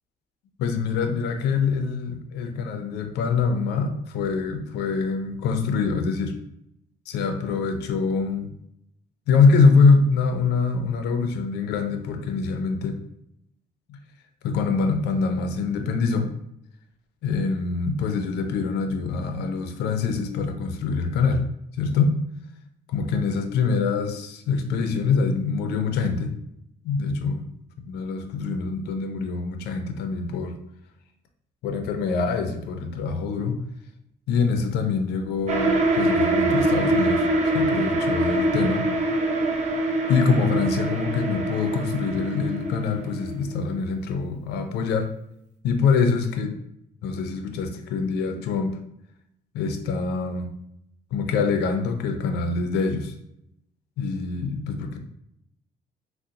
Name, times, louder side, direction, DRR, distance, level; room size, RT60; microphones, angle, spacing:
voice 1, 0.6-6.3 7.1-8.5 9.3-13.0 13.9-14.0 14.4-16.3 17.2-21.4 21.8-22.2 22.9-26.3 26.8-27.5 27.9-30.5 31.6-33.6 34.3-37.3 37.5-38.9 40.1-45.1 45.6-46.6 47.0-48.7 49.5-50.5 51.1-53.1 54.0-55.0, left 4 dB, 75° left, 6 dB, 0.5 m, -24 dB
sound 1, 35.5-43.7, right 1 dB, 45° right, 0.6 m, -24 dB
3.7 x 2.1 x 2.7 m, 0.78 s
cardioid pair, 110°, 17 cm